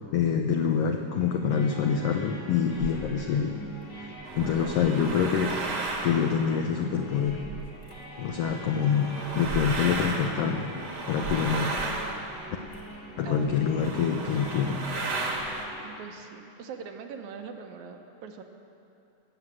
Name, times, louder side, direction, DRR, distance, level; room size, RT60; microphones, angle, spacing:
voice 1, 0.1-3.6 4.0-4.1 4.3-5.6 6.0-7.4 8.2-10.7 11.1-11.8 13.2-14.8, left 7 dB, 85° left, 4 dB, 1.4 m, -26 dB
sound 1, 1.1-15.8, right 2 dB, 65° left, 4.9 m, -44 dB
sound 2, 2.7-3.3 4.1-8.0 8.4-13.0 13.5-13.6 13.8-15.7, right 3 dB, 45° right, 1.5 m, -34 dB
voice 2, 4.1-4.7 13.2-13.7 15.8-18.4, right 6 dB, 75° right, 5 dB, 2.2 m, -42 dB
sound 3, 7.6-13.5, left 1 dB, 35° left, 1.6 m, -50 dB
18.5 x 8.0 x 7.5 m, 2.7 s
omnidirectional pair, 3.6 m